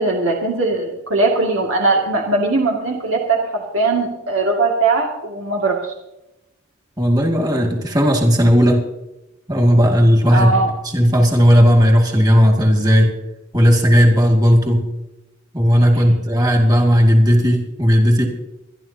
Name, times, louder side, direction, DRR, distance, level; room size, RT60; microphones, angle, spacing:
voice 1, 0.0-5.9 10.3-10.7, right 3 dB, 85° right, -1 dB, 2.2 m, -19 dB
voice 2, 7.0-8.9 9.5-10.5 10.8-13.1 13.5-14.9 15.5-18.3, equal, 20° right, 1 dB, 2.2 m, -14 dB
25.5 x 11.0 x 2.8 m, 0.91 s
head